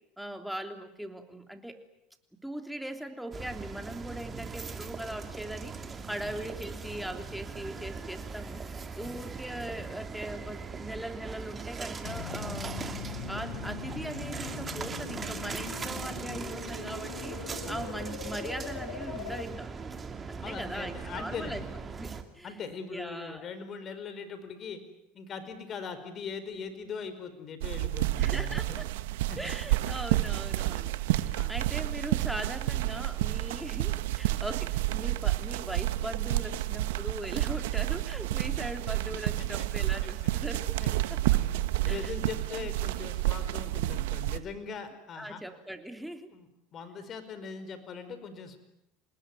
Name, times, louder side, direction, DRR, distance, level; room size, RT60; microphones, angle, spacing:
voice 1, 0.2-1.8 2.4-12.7 13.3-19.7 20.3-21.6 22.0-22.5 22.9-23.5 28.2-28.9 29.4-40.8 41.1-41.5 41.8-42.2 42.5-42.7 45.2-46.3, right 1 dB, ahead, 6 dB, 3.2 m, -40 dB
sound 1, 3.3-22.2, right 5 dB, 25° right, 2.7 m, -40 dB
sound 2, 12.0-19.4, left 7 dB, 90° left, 3.5 m, -41 dB
voice 2, 20.4-21.9 22.4-24.8 25.1-28.8 29.3-29.4 31.3-31.6 39.4-39.7 40.8-40.9 41.4-41.5 41.8-45.4 46.3-48.6, left 5 dB, 40° left, 11 dB, 4.9 m, -41 dB
sound 3, 27.6-44.4, right 16 dB, 85° right, 1.3 m, -30 dB
27.5 x 20.0 x 9.6 m, 0.86 s
supercardioid pair, 110°, 0 cm